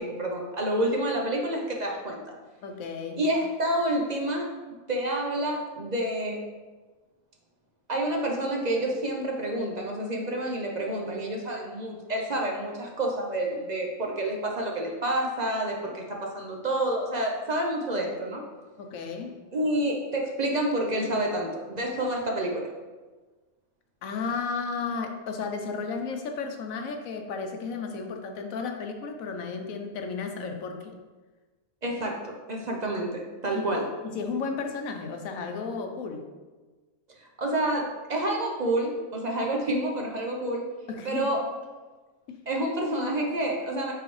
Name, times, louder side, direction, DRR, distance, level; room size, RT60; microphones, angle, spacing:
voice 1, 0.0-2.2 3.2-4.5 4.9-6.4 7.9-18.4 19.5-22.7 31.8-33.9 37.2-40.7 41.0-41.5 42.5-43.9, right 1 dB, 40° right, 0 dB, 0.7 m, -28 dB
voice 2, 2.6-3.2 18.8-19.4 24.0-31.0 34.0-36.3 40.9-41.3 42.3-42.4, left 5 dB, 80° left, 4 dB, 1.1 m, -33 dB
7.9 x 3.9 x 3.2 m, 1.3 s
omnidirectional pair, 1.4 m